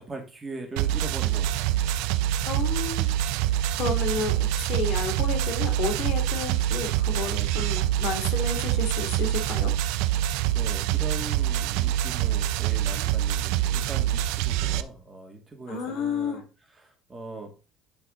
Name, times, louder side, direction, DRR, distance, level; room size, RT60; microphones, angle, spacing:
voice 1, 0.0-2.3 10.5-17.5, right 3 dB, 20° right, 2 dB, 2.3 m, -40 dB
sound 1, 0.8-14.8, right 12 dB, 80° right, 0.6 m, -25 dB
voice 2, 2.5-3.1 3.8-9.7 15.7-16.4, left 4 dB, 65° left, 4 dB, 2.9 m, -31 dB
11.0 x 4.9 x 4.0 m, 0.33 s
cardioid pair, 125°, 0 cm